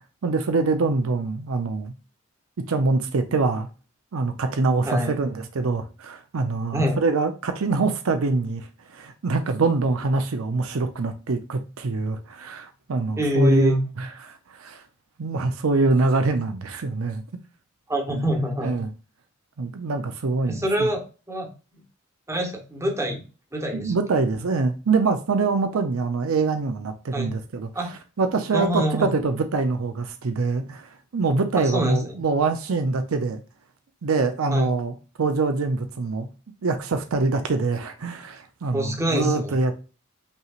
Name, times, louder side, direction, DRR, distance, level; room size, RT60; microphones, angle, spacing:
voice 1, 0.2-1.9 2.7-3.7 4.1-8.7 8.9-14.8 15.2-17.2 18.1-18.3 18.6-18.9 19.6-20.9 23.7-27.7 28.2-33.4 34.0-36.3 36.6-39.7, right 3 dB, 70° right, 0.6 m, -24 dB
voice 2, 4.9-5.2 6.7-7.0 13.2-13.8 17.9-18.7 20.5-21.0 21.3-21.5 22.3-23.2 23.5-23.9 27.1-27.3 27.7-27.9 28.5-29.1 31.5-32.2 34.5-34.7 38.7-39.5, equal, 15° right, 1.0 m, -24 dB
5.4 x 3.1 x 2.4 m
head